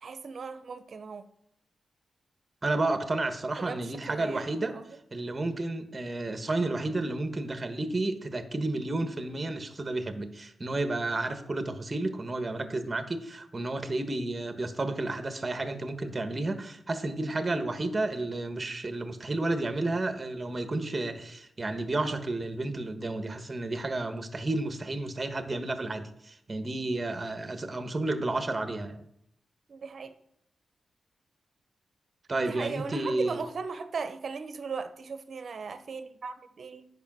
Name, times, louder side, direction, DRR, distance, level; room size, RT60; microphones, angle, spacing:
voice 1, 0.0-1.2 3.6-4.8 29.7-30.1 32.4-36.9, right 5 dB, 60° right, 0.9 m, -38 dB
voice 2, 2.6-4.8 5.1-29.0 32.3-33.4, right 2 dB, 35° right, 1.4 m, -31 dB
10.5 x 5.8 x 7.5 m
cardioid pair, 75°, 0 cm